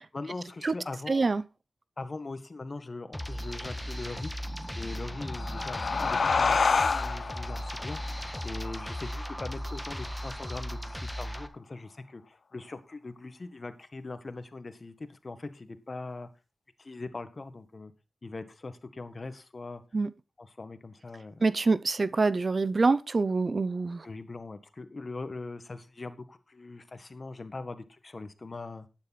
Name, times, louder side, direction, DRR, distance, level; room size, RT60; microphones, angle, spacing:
voice 1, 0.1-1.3 2.0-4.3 4.7-16.3 16.8-17.9 18.2-19.8 20.4-21.4 24.0-28.9, left 3 dB, 45° left, 1.6 m, -41 dB
voice 2, 1.1-1.4 19.9-20.1 21.4-24.0, right 3 dB, 50° right, 0.7 m, -25 dB
sound 1, 3.1-11.5, equal, 5° left, 1.4 m, -37 dB
sound 2, 5.0-10.2, left 4 dB, 75° left, 1.0 m, -29 dB
11.5 x 9.8 x 4.2 m
cardioid pair, 65°, 0 cm